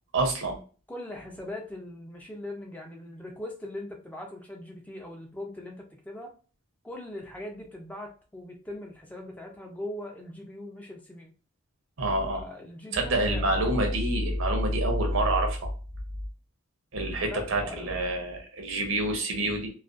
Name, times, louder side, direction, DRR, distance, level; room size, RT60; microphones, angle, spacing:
voice 1, 0.1-0.6 12.0-12.4 12.9-15.6 16.9-19.7, right 1 dB, 80° right, 3 dB, 0.6 m, -27 dB
voice 2, 0.9-6.3 6.8-11.3 12.2-13.9 17.2-18.3, left 1 dB, 5° left, 1 dB, 0.3 m, -40 dB
2.4 x 2.2 x 2.4 m, 0.38 s
head